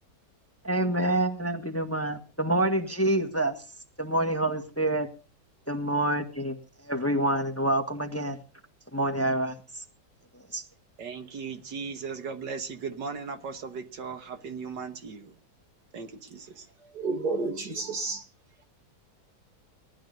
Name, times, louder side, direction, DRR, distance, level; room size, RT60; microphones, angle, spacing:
voice 1, 0.6-3.6 4.0-5.1 5.7-8.4 8.9-9.8 10.5-10.6, right 1 dB, 10° left, 1.4 m, -27 dB
voice 2, 11.0-15.4 15.9-16.7, right 5 dB, 80° right, 2.0 m, -37 dB
voice 3, 16.9-18.2, right 3 dB, 65° right, 3.0 m, -30 dB
18.5 x 12.0 x 5.3 m
omnidirectional pair, 1.8 m